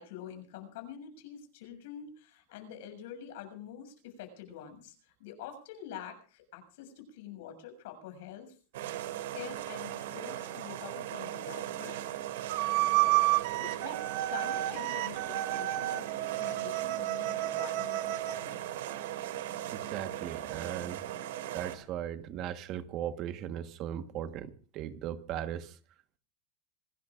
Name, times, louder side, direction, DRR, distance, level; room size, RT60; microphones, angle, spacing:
voice 1, 0.0-8.6 9.3-12.0 13.3-18.5, left 9 dB, 65° left, 6.8 m, -46 dB
sound 1, 8.7-21.8, right 12 dB, 80° right, 2.5 m, -39 dB
sound 2, 12.5-18.4, right 17 dB, 50° right, 1.2 m, -31 dB
voice 2, 19.7-21.0 21.5-25.8, right 10 dB, 35° right, 1.3 m, -38 dB
26.0 x 18.5 x 2.5 m
supercardioid pair, 165°, 0 cm